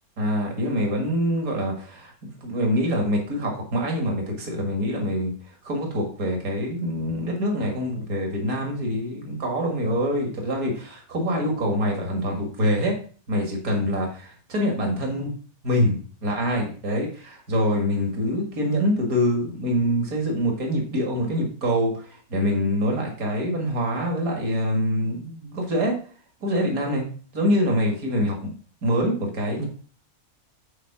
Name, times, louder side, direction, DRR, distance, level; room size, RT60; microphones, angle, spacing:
voice 1, 0.2-2.1 2.4-5.3 5.6-12.9 13.3-15.3 15.6-26.0 26.4-27.1 27.3-28.5 28.8-29.6, equal, 70° right, 1 dB, 2.4 m, -25 dB
8.3 x 4.5 x 5.9 m, 0.42 s
omnidirectional pair, 1.5 m